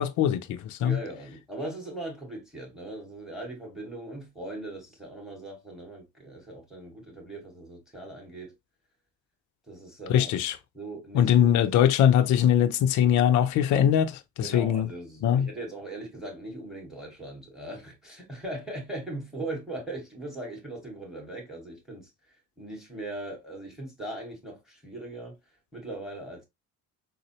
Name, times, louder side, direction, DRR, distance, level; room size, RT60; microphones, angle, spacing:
voice 1, 0.0-1.0 10.1-10.6 11.1-14.9 15.2-15.5, left 9 dB, 40° left, 0.5 m, -22 dB
voice 2, 0.8-8.5 9.7-10.3 10.7-11.7 14.4-22.1 22.6-25.3 25.7-26.4, right 2 dB, ahead, 2.2 m, -39 dB
3.8 x 2.0 x 3.0 m
hypercardioid pair, 60°, 47 cm